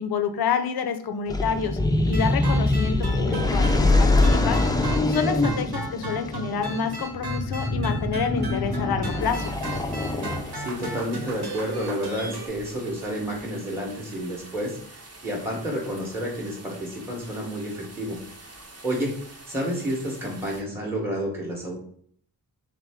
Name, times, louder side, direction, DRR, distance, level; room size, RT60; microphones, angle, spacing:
voice 1, 0.0-1.8 2.1-4.6 5.1-9.5, left 6 dB, 70° left, 8 dB, 0.6 m, -28 dB
sound 1, 1.3-10.8, left 2 dB, 10° left, 0.3 m, -24 dB
sound 2, 2.0-12.5, right 3 dB, 75° right, 1.2 m, -35 dB
sound 3, 9.2-20.6, right 2 dB, 40° right, 0.8 m, -47 dB
voice 2, 10.5-14.8 15.2-18.2 18.8-19.1 19.5-21.8, equal, 5° right, -2 dB, 0.8 m, -30 dB
3.7 x 3.4 x 3.4 m, 0.62 s
wide cardioid pair, 135°, 39 cm